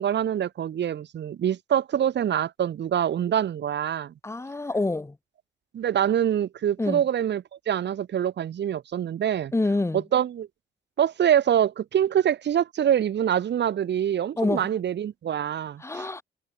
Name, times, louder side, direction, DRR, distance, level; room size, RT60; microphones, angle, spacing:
voice 1, 0.0-4.1 5.7-9.5 10.1-10.5 11.0-16.2, right 9 dB, 60° right, 2.7 m, -25 dB
voice 2, 4.2-5.2 6.8-7.0 9.5-10.0 14.4-14.7 15.8-16.2, left 2 dB, 15° left, 1.4 m, -27 dB
cardioid pair, 90°, 20 cm